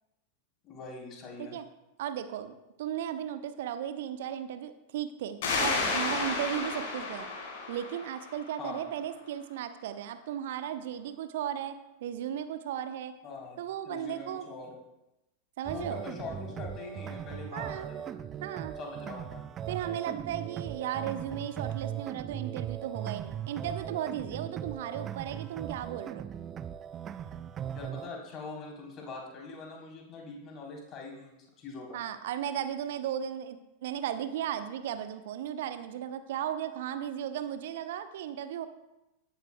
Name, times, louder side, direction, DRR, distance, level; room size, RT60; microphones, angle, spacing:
voice 1, 0.6-1.5 8.6-8.9 13.2-13.6 13.9-14.8 15.7-18.2 18.8-19.4 27.7-32.0, left 4 dB, 30° left, -1 dB, 3.7 m, -43 dB
voice 2, 2.0-7.3 7.7-11.8 12.0-13.1 13.6-14.5 15.6-16.0 17.5-17.9 18.4-18.7 19.7-26.3 31.9-38.7, right 10 dB, 55° right, 10 dB, 0.8 m, -35 dB
sound 1, 5.4-8.8, left 3 dB, 55° left, 4.3 m, -32 dB
sound 2, 15.7-28.1, right 9 dB, 25° right, 0.5 m, -39 dB
16.5 x 12.5 x 2.3 m, 0.95 s
figure-of-eight pair, 90°, 0 cm